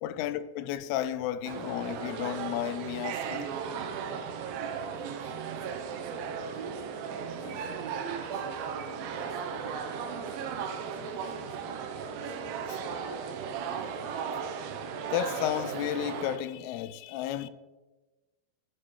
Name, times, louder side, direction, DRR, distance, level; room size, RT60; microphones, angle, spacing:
voice 1, 0.0-3.5 12.7-12.8 15.1-17.5, left 11 dB, 85° left, 2.5 m, -33 dB
sound 1, 1.5-16.4, right 6 dB, 75° right, 2.4 m, -36 dB
voice 2, 4.7-12.4, right 2 dB, 50° right, 2.1 m, -53 dB
sound 2, 4.9-11.8, left 1 dB, 55° left, 5.5 m, -53 dB
13.0 x 6.5 x 4.7 m
omnidirectional pair, 4.6 m